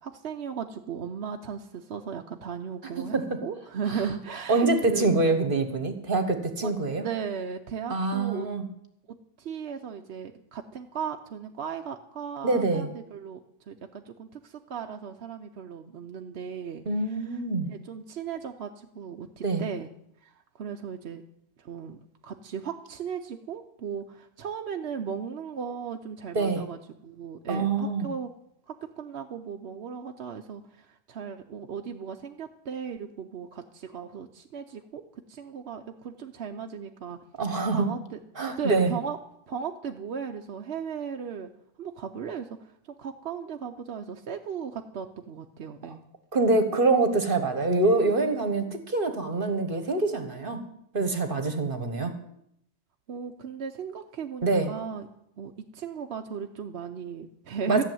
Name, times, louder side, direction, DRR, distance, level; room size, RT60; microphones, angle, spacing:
voice 1, 0.0-5.1 6.6-8.5 9.1-13.4 13.7-17.4 17.7-19.9 20.2-21.2 21.6-28.3 28.7-37.2 37.5-38.2 38.6-39.2 39.5-41.5 41.8-46.0 53.1-55.1 55.4-57.8, right 7 dB, 65° right, 4 dB, 1.0 m, -36 dB
voice 2, 4.5-7.0 7.9-8.7 12.4-12.9 16.9-17.7 19.4-19.6 26.3-26.6 27.5-28.1 37.4-37.9 38.4-38.9 46.3-50.6 50.9-52.1 54.4-54.7 57.7-57.8, right 3 dB, 50° right, 7 dB, 1.4 m, -25 dB
14.0 x 6.9 x 9.2 m, 0.76 s
omnidirectional pair, 1.2 m